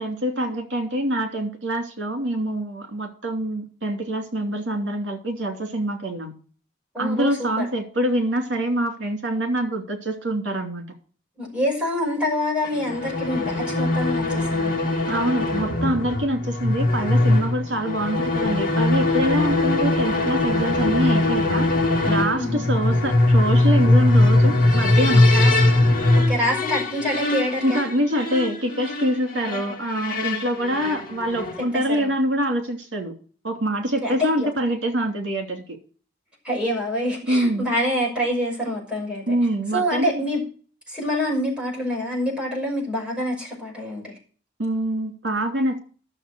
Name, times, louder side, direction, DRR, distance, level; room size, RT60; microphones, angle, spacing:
voice 1, 0.0-6.3 7.0-10.9 15.1-21.7 22.1-25.3 27.6-33.1 33.4-35.8 37.3-37.7 39.3-40.2 44.6-45.8, right 1 dB, 65° right, 3 dB, 2.9 m, -25 dB
voice 2, 6.9-7.7 11.4-14.7 22.4-22.6 25.3-25.9 26.2-27.8 31.6-32.1 34.0-34.5 36.4-39.3 39.7-40.4 40.9-44.1, equal, 5° right, -3 dB, 6.0 m, -26 dB
sound 1, 12.6-31.7, left 2 dB, 50° left, 2.4 m, -21 dB
12.0 x 7.3 x 6.2 m, 0.41 s
head